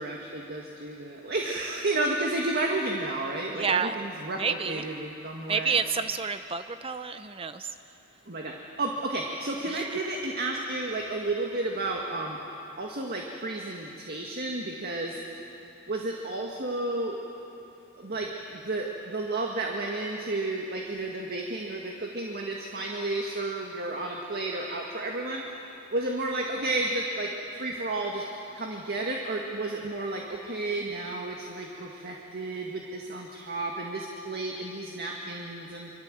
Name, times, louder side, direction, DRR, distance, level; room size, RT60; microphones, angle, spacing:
voice 1, 0.0-5.8 8.3-12.4 12.8-15.2 15.9-17.2 18.0-25.6 25.9-27.3 27.6-28.2 28.5-35.9, right 2 dB, 50° right, 0 dB, 1.9 m, -32 dB
voice 2, 3.5-4.0 4.4-4.8 5.5-7.7 9.7-9.8, right 5 dB, 25° right, 10 dB, 0.6 m, -29 dB
25.5 x 24.5 x 7.7 m, 2.9 s
head